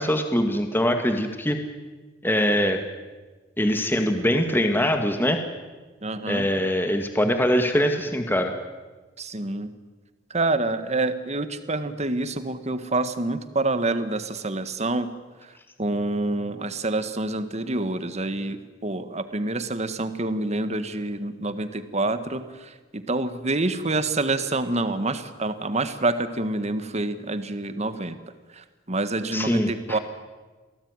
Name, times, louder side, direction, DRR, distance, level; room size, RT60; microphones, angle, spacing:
voice 1, 0.0-1.6 2.2-2.8 3.6-5.4 6.3-8.5 29.3-30.0, equal, 10° left, 5 dB, 1.8 m, -23 dB
voice 2, 6.0-6.5 9.2-9.7 10.3-15.1 15.4-15.5 15.8-28.2 28.5-30.0, right 2 dB, 35° right, 11 dB, 1.6 m, -27 dB
28.0 x 18.0 x 9.7 m, 1.3 s
head